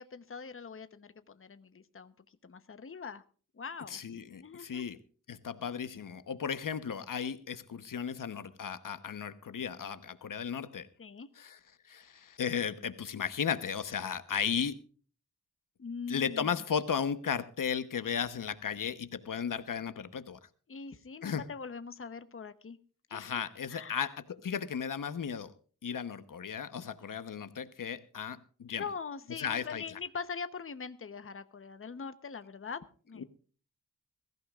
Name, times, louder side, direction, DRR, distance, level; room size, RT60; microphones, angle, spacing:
voice 1, 0.0-2.1 2.4-3.2 3.6-4.0 4.4-4.8 11.0-11.3 15.8-16.5 20.7-22.8 23.1-23.3 23.7-24.1 28.8-33.2, left 5 dB, 45° left, 1.0 m, -42 dB
voice 2, 3.9-5.0 5.3-10.9 11.3-11.6 11.8-14.8 16.1-20.4 21.2-21.4 23.1-25.5 25.8-28.8 29.4-30.0 33.2-33.3, left 7 dB, 85° left, 1.1 m, -35 dB
21.5 x 15.0 x 2.4 m
wide cardioid pair, 110°, 31 cm